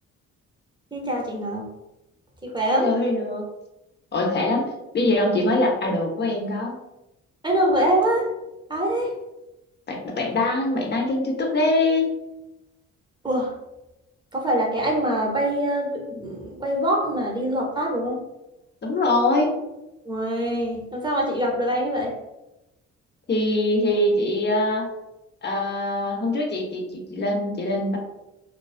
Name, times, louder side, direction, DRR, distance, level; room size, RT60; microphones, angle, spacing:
voice 1, 0.9-1.7 2.4-2.9 7.4-8.3 8.7-9.1 13.2-13.5 14.3-18.2 20.0-22.1, right 1 dB, 15° right, -1 dB, 0.8 m, -24 dB
voice 2, 2.7-3.4 4.1-6.8 9.9-12.2 18.8-19.5 23.3-24.9 25.4-28.0, left 2 dB, 35° left, 1 dB, 0.7 m, -23 dB
2.3 x 2.3 x 2.4 m, 0.95 s
supercardioid pair, 60°, 31 cm